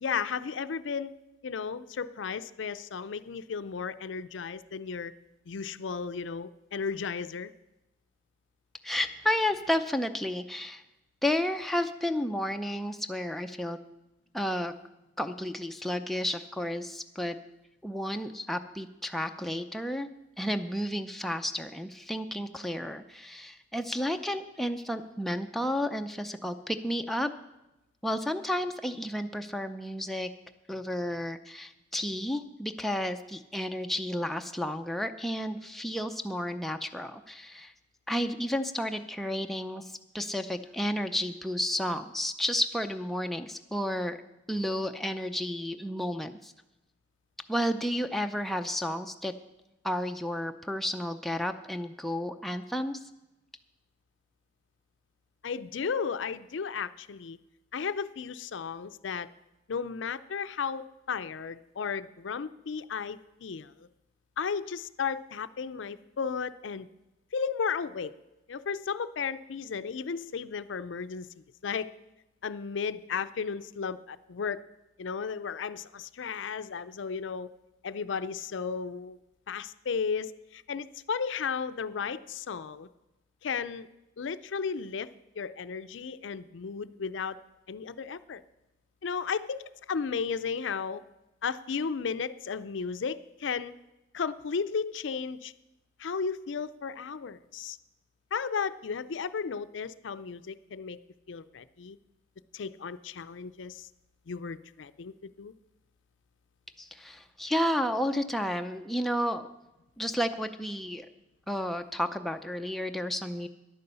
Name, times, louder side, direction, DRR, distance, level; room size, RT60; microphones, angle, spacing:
voice 1, 0.0-1.1 1.4-5.1 5.5-7.5 55.4-57.4 57.7-59.3 59.7-63.9 64.4-66.9 67.3-68.1 68.5-71.3 71.6-71.9 72.4-74.6 75.0-77.5 77.8-79.2 79.5-82.9 83.4-83.9 84.2-85.1 85.4-87.4 87.7-88.4 89.0-91.0 91.4-93.7 94.1-95.5 96.0-97.8 98.3-101.0 101.3-102.0 102.5-103.9 104.3-105.5, left 6 dB, 85° left, 14 dB, 0.5 m, -34 dB
voice 2, 8.8-10.8 11.2-13.8 14.3-14.7 15.2-17.4 17.8-20.1 20.4-27.3 28.0-30.3 30.7-37.7 38.1-44.2 44.5-46.5 47.5-49.3 49.8-53.0 106.8-109.5 110.0-111.1 111.5-113.5, left 1 dB, ahead, 5 dB, 0.5 m, -32 dB
11.0 x 9.4 x 6.8 m, 0.94 s
head